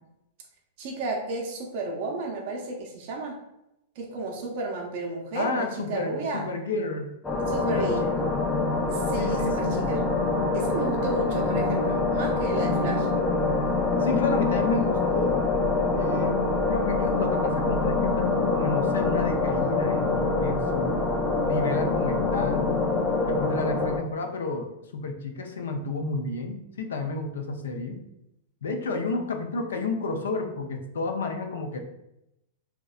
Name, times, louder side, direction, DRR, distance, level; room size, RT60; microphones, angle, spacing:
voice 1, 0.8-3.4 4.0-6.4 7.5-8.0 8.9-10.0 10.5-13.1, right 3 dB, 55° right, 0 dB, 0.5 m, -32 dB
voice 2, 5.3-7.1 7.7-8.4 9.2-9.9 14.0-15.4 16.0-21.1 21.4-22.7 23.3-28.0 28.6-31.8, left 3 dB, 85° left, 5 dB, 0.4 m, -31 dB
sound 1, 7.2-24.0, left 3 dB, 15° left, 0.4 m, -25 dB
2.7 x 2.1 x 2.3 m, 0.86 s
hypercardioid pair, 115°, 0 cm